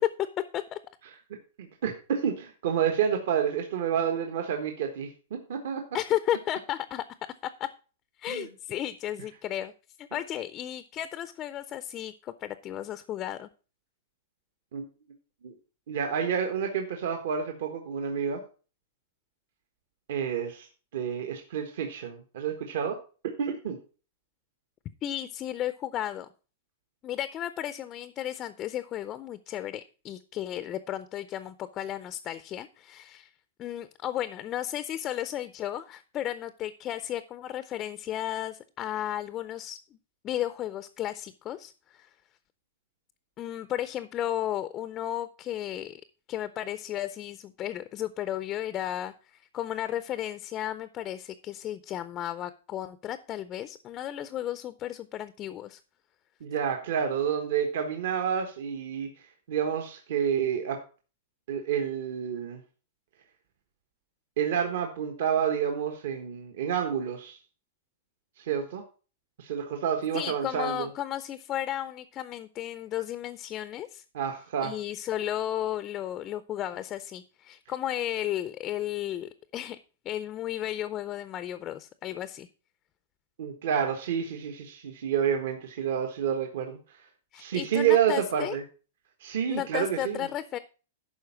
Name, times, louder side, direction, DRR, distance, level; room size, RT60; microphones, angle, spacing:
voice 1, 1.6-5.8 8.3-8.5 14.7-14.8 15.4-15.5 15.9-18.4 20.1-20.7 20.9-23.0 23.2-23.8 56.4-60.8 61.5-62.6 64.4-67.4 68.4-68.8 69.4-70.9 74.1-74.7 83.4-87.0 87.4-88.6 89.2-90.3, right 8 dB, 65° right, 4 dB, 1.3 m, -29 dB
voice 2, 5.9-7.0 7.4-7.7 8.2-9.7 10.0-13.5 25.0-26.3 27.0-33.3 33.6-39.8 40.2-42.1 43.4-46.0 46.3-55.8 70.1-74.0 74.6-79.8 80.0-82.5 87.3-88.6 89.5-90.6, left 12 dB, 25° left, 13 dB, 0.4 m, -34 dB
11.5 x 4.4 x 5.9 m, 0.36 s
supercardioid pair, 165°, 0 cm